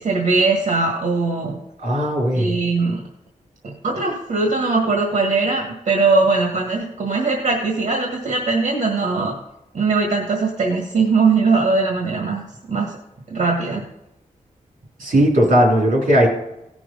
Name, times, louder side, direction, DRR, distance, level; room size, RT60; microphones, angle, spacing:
voice 1, 0.0-1.6 2.3-3.0 3.6-9.3 9.7-12.4 12.7-12.9 13.3-13.8, right 3 dB, 70° right, 0 dB, 1.8 m, -20 dB
voice 2, 1.8-2.6 15.0-16.3, equal, 85° right, -1 dB, 3.5 m, -17 dB
16.5 x 6.2 x 5.4 m, 0.89 s
wide cardioid pair, 90°, 13 cm